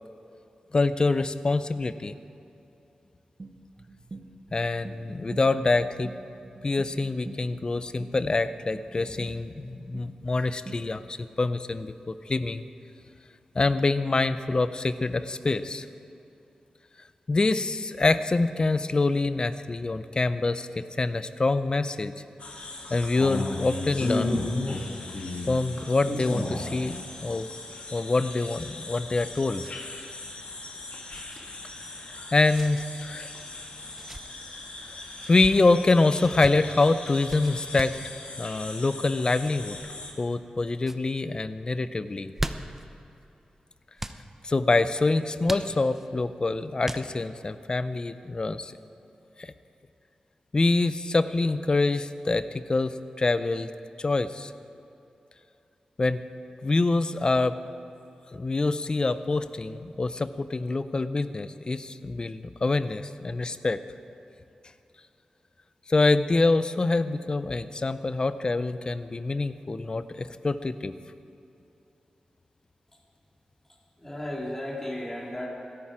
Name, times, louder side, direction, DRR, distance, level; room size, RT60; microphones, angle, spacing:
voice 1, 0.7-2.1 4.5-6.1 6.6-12.6 13.5-15.9 17.3-22.1 22.9-24.9 25.5-27.5 27.9-29.6 32.1-33.3 35.3-38.0 38.4-39.8 40.2-42.3 44.4-48.7 49.4-49.5 50.5-53.7 54.0-54.5 56.0-56.2 56.6-57.6 58.3-63.8 65.9-70.9, left 3 dB, 40° left, 12 dB, 0.6 m, -25 dB
sound 1, 3.4-11.1, right 3 dB, 45° right, 1.2 m, -46 dB
sound 2, 22.4-40.1, left 2 dB, 65° left, 2.1 m, -36 dB
sound 3, 28.6-29.8 30.1-30.2 31.1-31.4 32.5-32.9 33.8-34.2 35.1-35.5 36.2-36.5 37.3-38.0 39.2-39.5 40.2-40.5 40.8-41.0 42.1-42.9 44.0-44.2 45.4-46.1 46.8-47.4, right 1 dB, 15° right, 0.7 m, -38 dB
voice 2, 74.0-75.5, left 1 dB, 15° left, -2 dB, 2.4 m, -34 dB
16.5 x 13.0 x 4.9 m, 2.7 s
wide cardioid pair, 80°, 2 cm